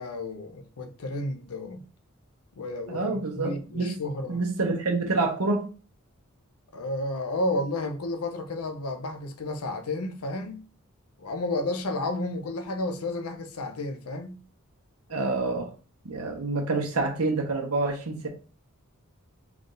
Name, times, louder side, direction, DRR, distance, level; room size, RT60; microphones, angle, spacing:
voice 1, 0.0-1.9 2.6-4.4 6.7-10.6 11.2-14.4, left 2 dB, 85° left, 0.6 m, -32 dB
voice 2, 2.9-3.9 4.3-5.7 15.1-15.7 16.0-18.3, right 3 dB, 80° right, 1.0 m, -27 dB
3.5 x 2.5 x 3.8 m
head